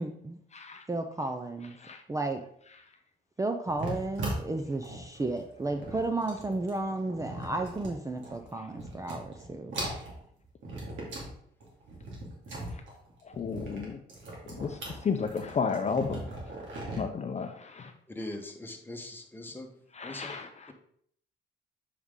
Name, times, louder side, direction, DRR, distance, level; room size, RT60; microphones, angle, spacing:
voice 1, 0.0-0.4 0.9-1.8 2.1-2.4 3.4-9.7, right 2 dB, 15° right, 6 dB, 0.5 m, -33 dB
voice 2, 0.5-0.8 1.8-2.0 12.7-12.8 13.2-14.0 14.5-16.3 17.0-17.9 19.9-20.5, left 5 dB, 35° left, 6 dB, 0.6 m, -33 dB
sound 1, 3.7-8.4 8.7-9.5 9.7-11.3 11.6-17.0, right 1 dB, 70° right, 2.4 m, -39 dB
voice 3, 18.1-19.7 20.0-20.3, left 1 dB, 10° left, 3 dB, 1.1 m, -41 dB
7.0 x 4.7 x 3.7 m, 0.65 s
cardioid pair, 90°, 20 cm